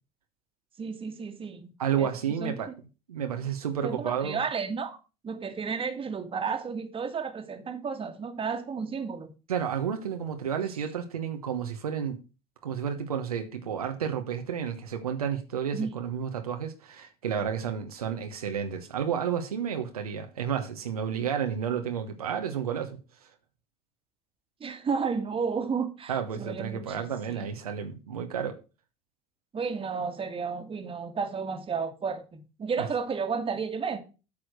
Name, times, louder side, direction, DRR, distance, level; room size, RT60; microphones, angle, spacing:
voice 1, 0.8-1.7 2.0-2.1 2.4-2.7 3.8-5.0 5.2-9.3 15.7-16.0 24.6-27.5 29.5-34.0, right 5 dB, 30° right, 1.9 m, -32 dB
voice 2, 1.8-2.7 3.1-4.4 9.5-12.2 12.6-23.0 26.1-28.6 32.8-32.9, right 8 dB, 90° right, 1.1 m, -31 dB
8.5 x 6.2 x 6.3 m
hypercardioid pair, 75°, 18 cm